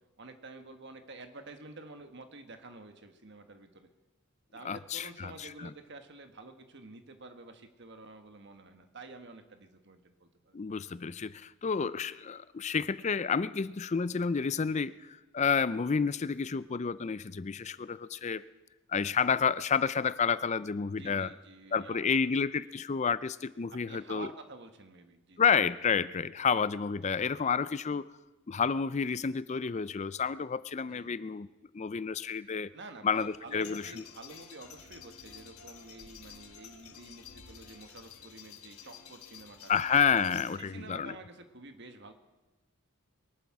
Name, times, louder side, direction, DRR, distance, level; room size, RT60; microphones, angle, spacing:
voice 1, 0.2-3.9 4.5-10.6 11.8-11.9 14.7-14.8 21.0-22.3 23.9-25.4 30.8-31.2 32.7-39.7 40.6-42.1, right 3 dB, 55° right, 7 dB, 1.4 m, -49 dB
voice 2, 4.6-5.7 10.5-18.4 18.9-21.3 21.7-24.3 25.4-28.1 28.5-31.5 31.7-32.7 33.0-34.0 39.7-41.1, left 6 dB, 30° left, 16 dB, 0.4 m, -30 dB
sound 1, 33.1-40.9, left 7 dB, 85° left, 1.4 m, -51 dB
23.5 x 11.5 x 4.8 m, 1.1 s
head